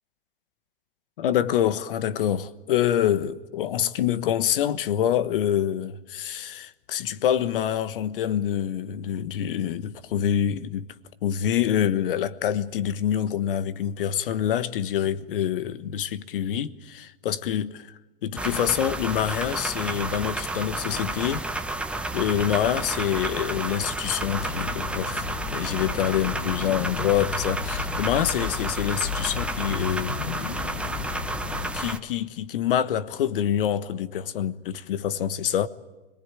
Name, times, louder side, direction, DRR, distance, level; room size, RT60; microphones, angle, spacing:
voice 1, 1.2-10.9 11.2-17.9 18.2-21.5 22.1-30.3 31.7-35.7, left 10 dB, 65° left, 1.3 m, -26 dB
sound 1, 18.4-32.0, right 2 dB, 5° right, 1.1 m, -31 dB
sound 2, 24.2-31.8, left 8 dB, 90° left, 1.0 m, -34 dB
25.5 x 19.5 x 9.0 m
hypercardioid pair, 125°, 29 cm